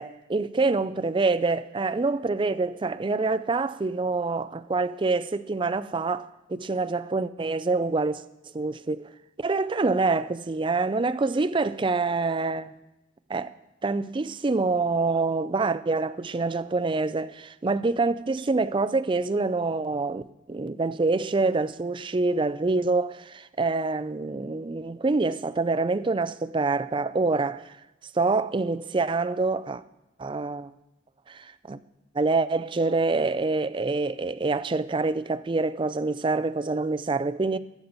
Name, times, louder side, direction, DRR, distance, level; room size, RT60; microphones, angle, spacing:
voice 1, 0.0-8.2 8.5-9.1 9.4-12.7 13.3-13.5 13.8-20.2 20.5-27.8 28.1-29.8 30.2-30.7 31.3-31.8 32.1-37.6, right 3 dB, 25° right, 0.4 m, -26 dB
22.0 x 8.3 x 4.1 m
head